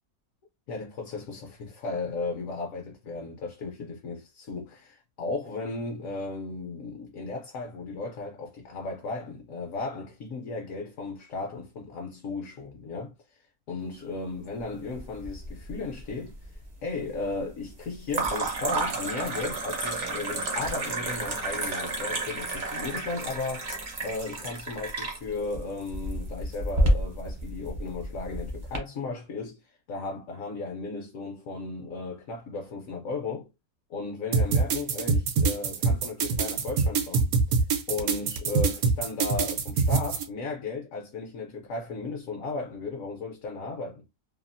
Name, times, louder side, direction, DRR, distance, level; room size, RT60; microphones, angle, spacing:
voice 1, 0.7-23.7 24.0-33.5 33.9-44.0, left 3 dB, 65° left, 0.9 m, -35 dB
sound 1, 15.0-15.7 16.0-16.6 18.1-28.8, right 2 dB, 50° right, 0.6 m, -30 dB
sound 2, 34.3-40.2, right 5 dB, 70° right, 1.0 m, -24 dB
2.8 x 2.3 x 2.5 m
omnidirectional pair, 1.6 m